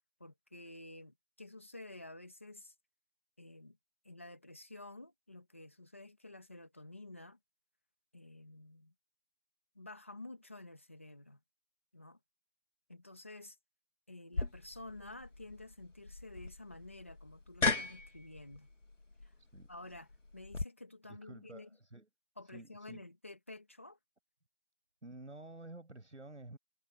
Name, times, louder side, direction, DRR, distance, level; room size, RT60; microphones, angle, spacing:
voice 1, 0.0-2.7 3.4-3.8 4.0-7.4 8.1-8.9 9.7-11.4 11.9-12.2 12.9-13.6 14.1-18.7 19.2-19.3 19.7-21.7 22.4-24.0, left 2 dB, 10° left, 2.0 m, -51 dB
Knocking a kettle, 14.3-20.6, left 3 dB, 90° left, 2.8 m, -38 dB
voice 2, 19.4-19.7 21.1-22.1 22.4-23.0 25.0-26.6, right 2 dB, 75° right, 7.2 m, -51 dB
figure-of-eight pair, 180°, 36 cm